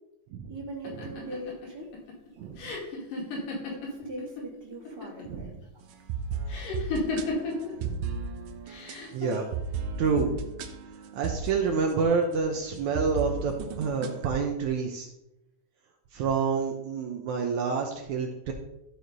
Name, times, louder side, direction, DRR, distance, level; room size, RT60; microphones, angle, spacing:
voice 1, 0.5-1.9 3.7-5.5, right 1 dB, 10° right, -3 dB, 2.0 m, -40 dB
sound 1, 0.8-4.4 4.7-5.4 6.5-7.7 8.7-9.3, left 3 dB, 75° left, 3.8 m, -33 dB
voice 2, 2.4-2.7 5.3-5.6 7.8-8.1 9.1-9.5 10.0-10.4 11.1-15.1 16.1-18.5, right 5 dB, 70° right, 2 dB, 2.1 m, -28 dB
sound 2, 5.9-12.3 12.8-14.3, right 5 dB, 90° right, 2.5 m, -35 dB
12.5 x 4.9 x 5.3 m, 0.89 s
omnidirectional pair, 3.8 m